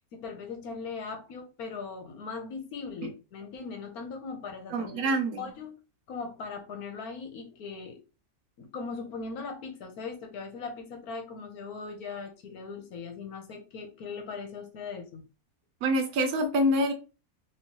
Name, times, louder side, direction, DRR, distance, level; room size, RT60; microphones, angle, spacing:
voice 1, 0.1-5.7 6.1-8.0 8.6-15.3, left 4 dB, 80° left, 5 dB, 1.3 m, -39 dB
voice 2, 4.7-5.5 15.8-16.9, equal, 90° right, 5 dB, 1.2 m, -26 dB
3.1 x 3.0 x 3.0 m, 0.32 s
omnidirectional pair, 1.6 m